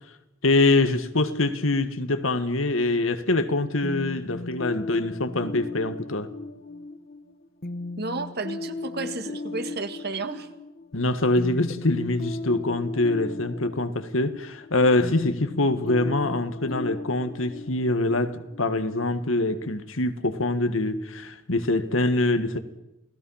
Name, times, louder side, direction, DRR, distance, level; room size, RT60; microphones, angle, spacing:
voice 1, 0.4-6.3 10.9-22.6, left 2 dB, 80° left, 1.7 m, -24 dB
sound 1, 3.8-19.4, left 2 dB, 45° left, 1.2 m, -37 dB
voice 2, 8.0-10.5, right 3 dB, 50° right, 1.9 m, -32 dB
29.0 x 18.5 x 5.7 m
head